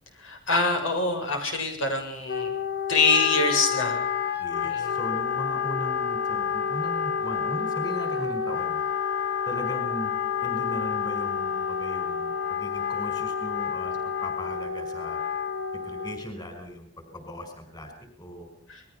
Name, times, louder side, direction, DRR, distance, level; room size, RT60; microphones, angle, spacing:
voice 1, 0.2-2.5 2.9-4.0 4.6-4.9 18.7-18.8, left 3 dB, 80° left, 4 dB, 7.4 m, -25 dB
Wind instrument woodwind instrument, 2.3-16.3, left 7 dB, 55° left, 2.2 m, -29 dB
voice 2, 4.4-8.8 9.5-10.1 10.4-15.2 15.7-17.9 18.2-18.5, equal, 20° left, 6 dB, 5.4 m, -38 dB
29.5 x 21.0 x 5.7 m, 0.64 s
head